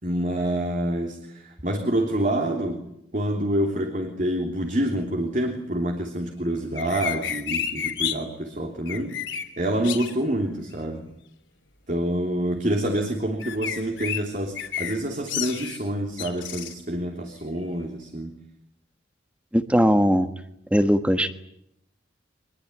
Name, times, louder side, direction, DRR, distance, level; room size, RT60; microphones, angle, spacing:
voice 1, 0.0-2.8 3.1-9.1 9.6-11.1 11.9-18.3, right 1 dB, 40° right, 3 dB, 3.2 m, -27 dB
sound 1, 6.7-8.1 8.9-9.4 9.8-10.1 13.4-14.2 14.5-14.9 15.3-15.8 16.2-16.7, left 9 dB, 70° left, 3.3 m, -30 dB
voice 2, 19.5-20.3 20.7-21.3, equal, 5° right, 9 dB, 1.4 m, -19 dB
24.0 x 22.0 x 9.8 m, 0.79 s
head